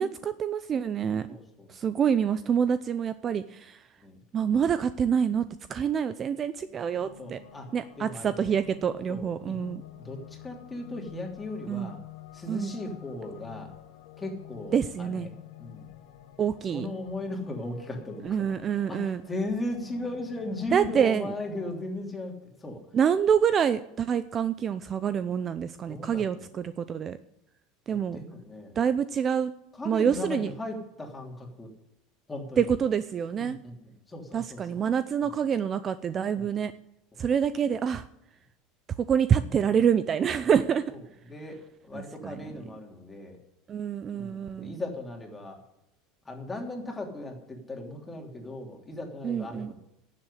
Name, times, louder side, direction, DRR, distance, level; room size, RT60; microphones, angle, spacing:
voice 1, 0.0-1.3 1.7-3.8 4.3-7.4 7.7-9.8 11.7-11.9 12.5-12.8 14.7-15.3 16.4-16.9 18.2-19.2 20.7-21.2 22.9-27.2 27.9-28.2 28.8-29.5 29.9-30.5 32.6-33.6 34.3-36.7 37.2-38.0 39.0-40.8 41.9-42.4 43.7-44.7 49.2-49.7, right 8 dB, 30° right, 14 dB, 0.5 m, -26 dB
voice 2, 1.3-1.7 4.0-4.2 6.6-6.8 7.2-7.7 8.0-8.6 9.1-9.6 10.0-12.0 12.3-13.7 14.2-15.9 16.7-22.8 25.9-26.5 27.9-28.8 29.7-31.7 32.3-32.7 33.4-34.8 35.2-35.3 36.4-36.6 37.1-37.2 40.9-41.0 41.2-41.6 41.8-43.4 44.1-45.6 46.2-49.8, left 1 dB, 15° left, 1 dB, 3.0 m, -37 dB
sound 1, 6.9-21.7, left 12 dB, 80° left, 2.0 m, -49 dB
11.5 x 7.6 x 9.9 m, 0.84 s
supercardioid pair, 125°, 0 cm